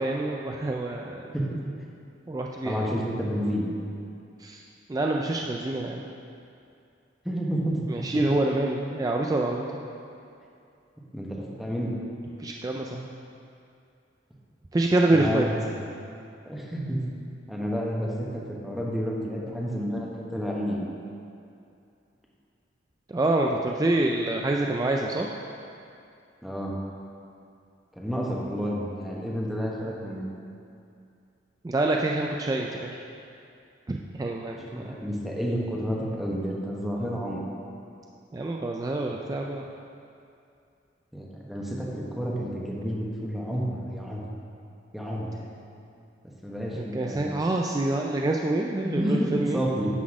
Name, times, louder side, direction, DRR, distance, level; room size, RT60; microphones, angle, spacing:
voice 1, 0.0-1.3 2.3-2.9 4.4-4.6 4.9-6.1 7.9-9.8 12.4-13.1 14.7-15.5 23.1-25.3 31.6-33.0 33.9-35.0 38.3-39.7 46.7-49.6, right 2 dB, 20° right, 0 dB, 0.3 m, -26 dB
voice 2, 2.6-3.7 7.2-7.8 11.1-11.9 15.1-15.6 16.4-17.0 17.5-20.9 26.4-26.8 27.9-30.3 34.6-37.4 41.1-44.3 44.9-45.3 46.4-47.4 48.8-49.9, equal, ahead, -4 dB, 1.0 m, -30 dB
9.7 x 4.0 x 6.1 m, 2.5 s
head